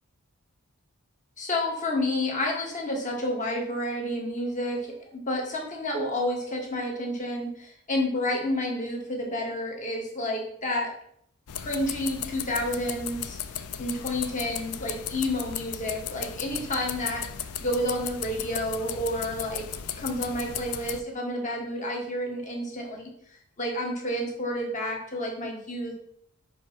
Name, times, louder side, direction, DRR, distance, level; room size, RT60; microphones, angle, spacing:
voice 1, 1.4-10.9 11.6-13.4 13.8-23.1 23.6-26.0, left 1 dB, 35° left, 0 dB, 1.6 m, -30 dB
sound 1, 11.5-21.0, left 9 dB, 75° left, 0.5 m, -36 dB
5.3 x 4.9 x 5.7 m, 0.68 s
head